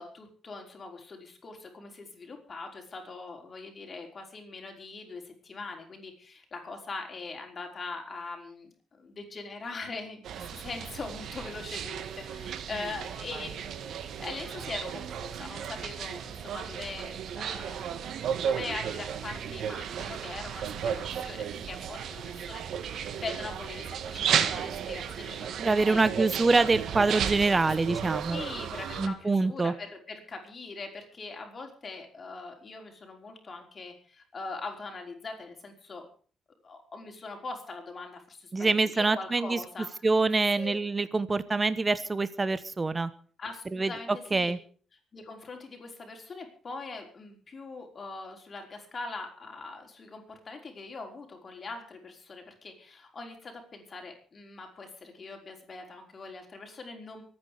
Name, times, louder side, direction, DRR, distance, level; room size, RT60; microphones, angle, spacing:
voice 1, 0.0-10.2 10.5-17.9 18.4-26.3 27.4-27.6 28.3-36.1 36.6-39.9 40.5-40.7 43.4-44.5 45.1-57.2, left 3 dB, 40° left, 2 dB, 5.4 m, -42 dB
sound 1, 10.2-29.1, right 8 dB, 70° right, 1.6 m, -34 dB
voice 2, 25.6-28.4 29.0-29.7 38.5-39.6 40.0-43.1 43.7-43.9 44.3-44.6, right 3 dB, 25° right, 14 dB, 1.0 m, -25 dB
24.0 x 9.7 x 5.1 m, 0.42 s
cardioid pair, 90°, 0 cm